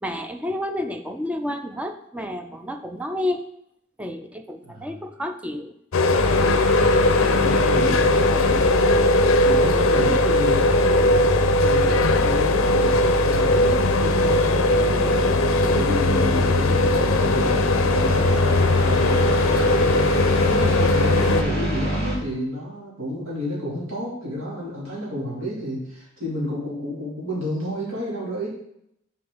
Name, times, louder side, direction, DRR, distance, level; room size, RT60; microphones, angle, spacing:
voice 1, 0.0-3.4 4.0-5.7, left 1 dB, 5° right, 6 dB, 0.4 m, -30 dB
sound 1, 5.9-21.4, left 2 dB, 90° left, 0.5 m, -19 dB
sound 2, 6.1-22.2, equal, 55° right, 2.7 m, -27 dB
voice 2, 6.7-9.1 9.4-11.2 11.6-15.4 15.7-20.0 20.4-28.5, equal, 80° right, -5 dB, 2.9 m, -31 dB
6.6 x 4.8 x 3.9 m, 0.74 s
head